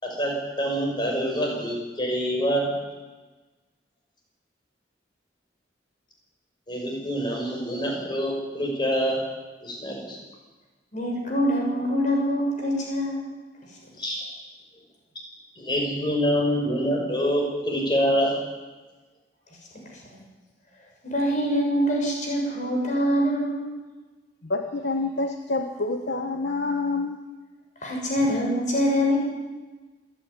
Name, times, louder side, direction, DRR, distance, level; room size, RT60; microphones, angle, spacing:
voice 1, 0.0-2.7 6.7-9.2 9.6-10.2 14.0-14.3 15.6-18.3, equal, 25° left, -1 dB, 5.9 m, -26 dB
voice 2, 10.9-13.2 21.0-23.7 27.8-29.2, equal, 40° left, -1 dB, 6.5 m, -24 dB
voice 3, 24.4-27.2, left 3 dB, 60° left, 4 dB, 1.2 m, -27 dB
27.0 x 11.0 x 9.8 m, 1.3 s
head